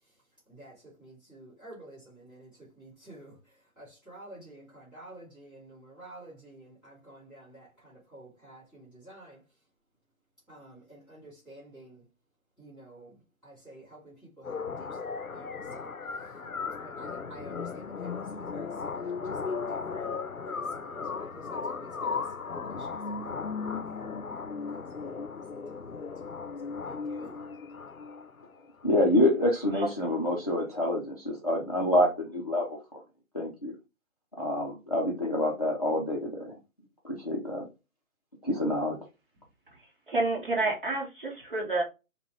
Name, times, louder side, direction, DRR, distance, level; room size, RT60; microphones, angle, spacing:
voice 1, 0.5-9.4 10.5-12.1 12.6-15.9 16.8-20.1 20.4-22.3 22.6-24.1 24.5-26.3 26.6-27.4, right 1 dB, ahead, 2.4 m, -51 dB
sound 1, 14.4-28.4, left 5 dB, 80° left, 0.7 m, -36 dB
voice 2, 28.8-33.0 33.3-33.7 34.4-36.5 37.0-37.7 38.4-39.0, left 1 dB, 30° left, 0.6 m, -27 dB
voice 3, 29.7-30.2 40.1-41.8, right 2 dB, 40° right, 1.2 m, -29 dB
5.5 x 2.3 x 3.2 m
figure-of-eight pair, 150°, 42 cm